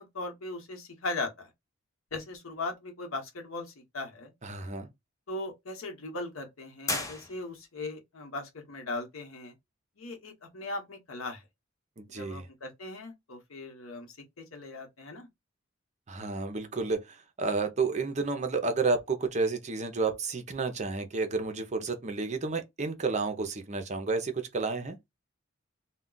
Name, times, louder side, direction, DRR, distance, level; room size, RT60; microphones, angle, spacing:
voice 1, 0.0-1.5 2.1-4.3 5.3-9.5 10.0-11.4 12.1-15.3, left 2 dB, 90° left, 0.9 m, -38 dB
voice 2, 4.4-4.9 12.0-12.5 16.1-25.0, right 4 dB, 35° right, 0.6 m, -31 dB
sound 1, 6.9-7.9, left 2 dB, 15° left, 0.6 m, -35 dB
2.3 x 2.2 x 3.7 m
head